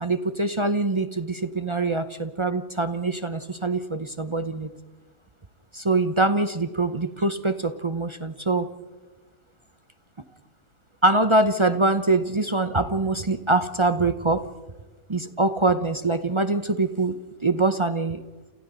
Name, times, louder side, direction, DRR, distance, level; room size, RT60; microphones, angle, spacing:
voice 1, 0.0-4.7 5.7-8.7 11.0-14.5 15.1-17.1 17.4-18.2, right 2 dB, 35° right, 10 dB, 0.5 m, -24 dB
29.0 x 28.5 x 4.0 m, 1.2 s
omnidirectional pair, 1.8 m